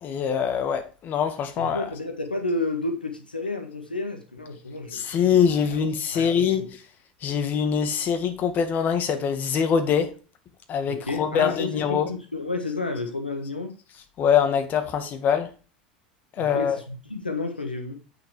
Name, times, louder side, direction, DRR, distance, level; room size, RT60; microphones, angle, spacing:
voice 1, 0.0-1.8 4.9-6.7 7.2-10.1 10.7-12.1 14.2-15.5 16.4-16.8, left 7 dB, 40° left, 2.0 m, -23 dB
voice 2, 1.6-5.0 5.5-5.8 6.1-6.6 10.9-13.8 16.4-18.0, left 2 dB, 90° left, 1.4 m, -31 dB
8.7 x 6.7 x 4.8 m
figure-of-eight pair, 80°, 5 cm